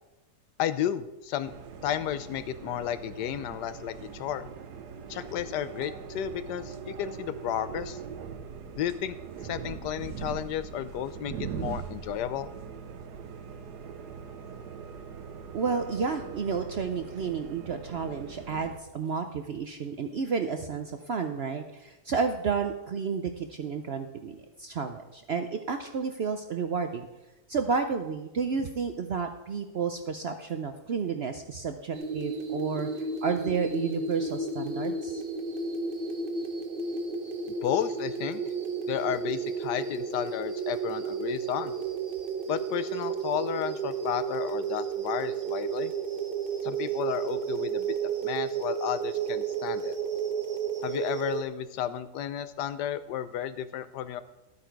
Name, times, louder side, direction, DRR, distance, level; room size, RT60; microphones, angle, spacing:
voice 1, 0.6-1.5 1.8-4.5 5.1-8.0 8.8-9.2 9.4-12.5 37.6-38.4 38.9-41.7 42.5-45.9 46.6-47.9 48.2-50.0 50.8-54.2, left 10 dB, 90° left, 13 dB, 1.3 m, -32 dB
sound 1, 1.4-18.8, right 6 dB, 80° right, 1.3 m, -41 dB
voice 2, 15.5-27.1 27.5-32.9 33.2-35.2, right 5 dB, 60° right, 7 dB, 0.6 m, -31 dB
sound 2, 31.9-51.4, right 5 dB, 40° right, 1.0 m, -32 dB
12.5 x 8.7 x 4.6 m, 0.99 s
omnidirectional pair, 1.7 m